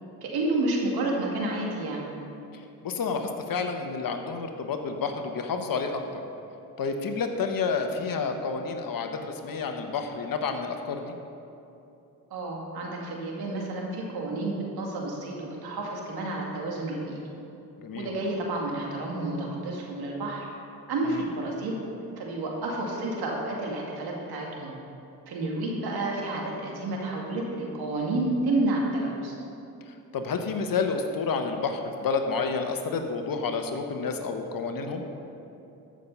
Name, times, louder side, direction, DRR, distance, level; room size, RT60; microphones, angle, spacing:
voice 1, 0.2-2.0 12.3-17.2 17.9-20.5 20.9-21.8 22.2-24.7 25.3-29.4, right 2 dB, 75° right, -1 dB, 2.3 m, -30 dB
voice 2, 2.5-6.2 6.8-11.1 17.8-18.1 21.1-21.2 29.9-35.0, left 4 dB, 60° left, 5 dB, 1.3 m, -30 dB
14.0 x 6.4 x 5.6 m, 2.8 s
supercardioid pair, 60°, 38 cm